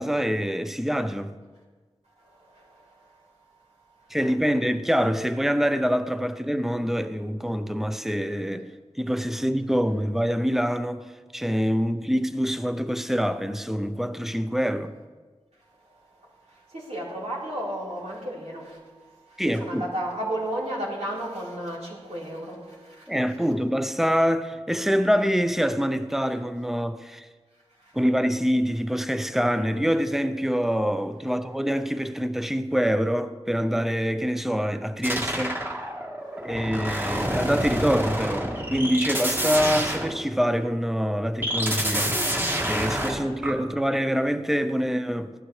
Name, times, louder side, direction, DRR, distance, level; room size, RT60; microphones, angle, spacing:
voice 1, 0.0-1.4 4.1-15.0 19.4-19.8 23.1-27.3 27.9-35.6 36.4-42.2 42.7-45.3, equal, 5° right, 0.6 m, -25 dB
voice 2, 2.2-3.2 4.0-4.1 15.8-23.1 27.8-28.0 36.2-36.7, right 1 dB, 85° right, 4.1 m, -34 dB
sound 1, 35.0-40.6 41.4-43.5, equal, 20° right, 1.7 m, -28 dB
15.5 x 11.5 x 3.3 m
wide cardioid pair, 70°, 11 cm